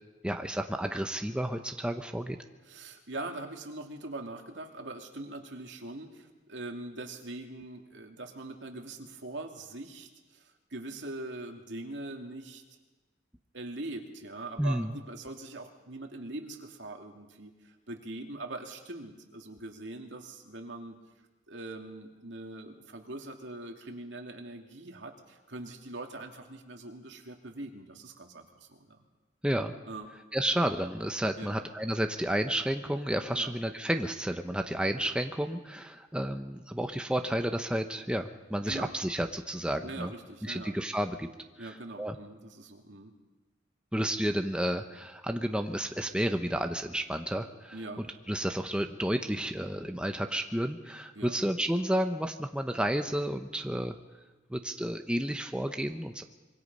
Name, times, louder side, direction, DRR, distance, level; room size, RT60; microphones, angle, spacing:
voice 1, 0.2-2.4 14.6-15.0 29.4-29.7 30.3-40.1 40.4-41.3 41.6-42.2 43.9-47.8 48.3-54.0 54.5-56.2, right 1 dB, 5° right, 5 dB, 0.8 m, -31 dB
voice 2, 2.6-12.6 13.5-21.0 21.5-29.0 29.8-30.1 31.4-31.6 33.3-33.5 38.7-38.9 39.8-40.7 41.6-43.1 47.7-48.0 51.1-51.4, right 2 dB, 70° right, 3 dB, 2.6 m, -42 dB
25.5 x 23.5 x 5.5 m, 1.2 s
head